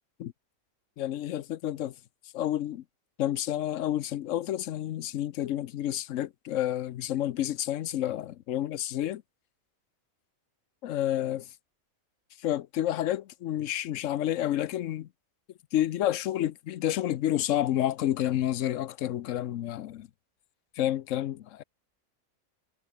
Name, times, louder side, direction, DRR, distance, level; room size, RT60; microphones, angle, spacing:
voice 1, 1.0-1.9 2.3-2.8 3.2-9.2 10.8-11.4 12.4-15.1 15.7-20.1 20.7-21.6, left 12 dB, 70° left, 1.0 m, -29 dB
omnidirectional pair, 1.5 m